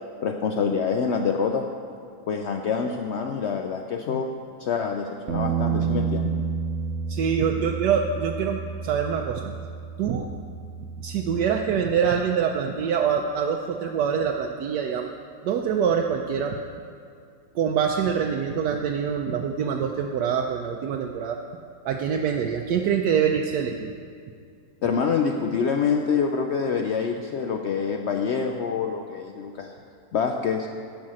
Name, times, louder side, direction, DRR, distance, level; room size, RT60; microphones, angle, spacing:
voice 1, 0.2-1.6 2.3-4.3 4.6-6.3 24.8-29.7 30.1-30.7, left 6 dB, 90° left, 4 dB, 0.6 m, -26 dB
Bass guitar, 5.3-11.5, right 6 dB, 55° right, 1.0 m, -30 dB
voice 2, 7.1-9.5 10.0-10.3 11.0-15.1 15.4-16.6 17.5-21.4 21.8-23.9, right 7 dB, 80° right, 2 dB, 1.2 m, -25 dB
10.5 x 5.3 x 7.5 m, 2.4 s
omnidirectional pair, 1.8 m